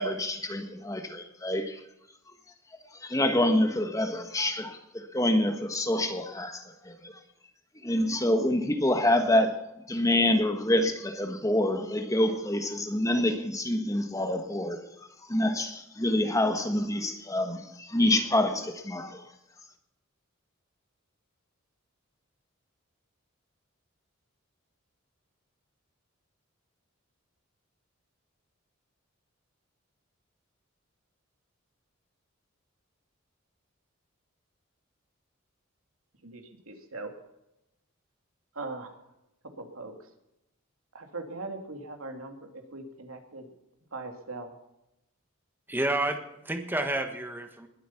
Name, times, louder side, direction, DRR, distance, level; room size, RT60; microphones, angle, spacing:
voice 1, 0.0-1.8 3.0-7.2 7.8-9.6 9.9-14.9 15.3-19.2, left 1 dB, 15° left, 1.3 m, -27 dB
voice 2, 36.2-37.1 38.5-39.0 39.6-40.1 40.9-43.5 43.9-44.5, right 3 dB, 80° right, 2.6 m, -40 dB
voice 3, 45.7-47.7, right 1 dB, 10° right, 1.4 m, -30 dB
20.5 x 8.5 x 5.8 m
head